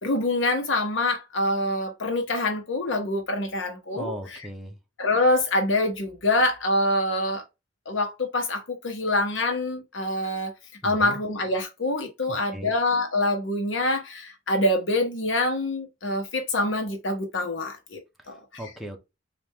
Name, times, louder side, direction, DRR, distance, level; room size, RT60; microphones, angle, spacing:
voice 1, 0.0-4.4 5.0-7.4 7.9-10.5 10.8-18.0 18.3-18.4, left 2 dB, 70° left, 1.0 m, -25 dB
voice 2, 3.9-4.8 10.8-11.2 12.3-12.7 18.2-18.3 18.6-19.0, right 1 dB, ahead, 0.9 m, -37 dB
4.2 x 2.5 x 3.5 m
head